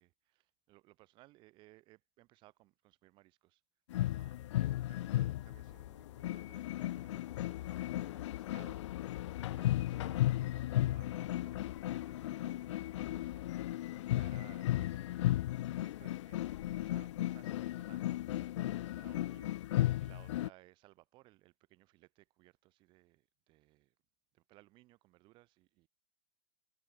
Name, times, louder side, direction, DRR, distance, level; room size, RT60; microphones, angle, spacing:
voice 1, 0.0-3.6 4.1-15.1 15.8-23.9 24.3-25.9, right 19 dB, 25° right, 5.3 m, -63 dB
sound 1, 3.9-20.5, left 14 dB, 60° left, 0.5 m, -35 dB
supercardioid pair, 165°, 18 cm